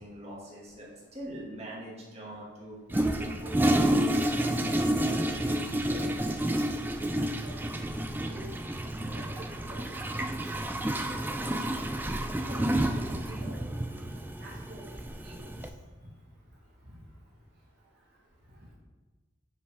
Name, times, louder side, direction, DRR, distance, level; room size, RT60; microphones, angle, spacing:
voice 1, 0.0-6.2, right 1 dB, 35° right, -5 dB, 1.8 m, -43 dB
Toilet flush, 2.9-15.7, right 1 dB, 10° right, 0.3 m, -30 dB
voice 2, 7.4-7.8 8.2-8.5 9.0-10.7 11.1-11.8 12.4-13.6 14.1-14.8 15.2-15.5 16.9-17.0, right 1 dB, 55° right, -5 dB, 1.4 m, -49 dB
9.6 x 5.5 x 3.4 m, 1.3 s
head